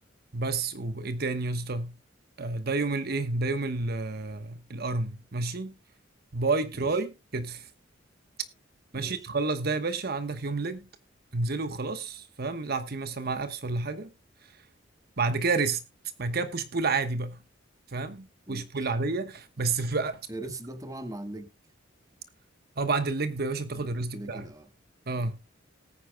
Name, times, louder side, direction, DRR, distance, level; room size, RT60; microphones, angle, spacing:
voice 1, 0.3-1.9 2.4-5.7 6.3-7.7 8.9-10.8 11.3-14.1 14.4-14.5 15.2-15.8 16.2-17.4 17.9-20.2 22.8-24.4 25.1-25.4, right 3 dB, 55° right, 1.1 m, -30 dB
voice 2, 8.9-9.3 18.5-19.0 20.3-21.5 23.8-24.7, right 1 dB, 20° right, 1.4 m, -41 dB
19.0 x 9.7 x 2.2 m
head